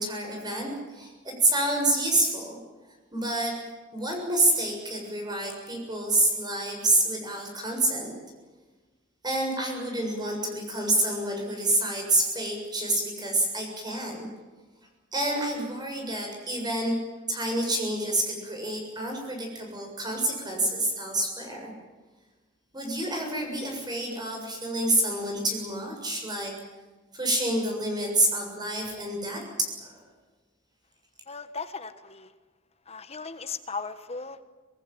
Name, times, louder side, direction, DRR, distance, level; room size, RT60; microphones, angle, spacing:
voice 1, 0.0-2.6 3.1-3.6 3.9-8.1 9.2-14.3 15.1-17.0 17.3-21.7 22.7-26.5 27.1-30.0, right 1 dB, 20° right, 1 dB, 7.1 m, -28 dB
voice 2, 31.3-32.3 32.9-34.4, left 4 dB, 30° left, 10 dB, 1.3 m, -37 dB
25.5 x 18.5 x 9.1 m, 1.3 s
head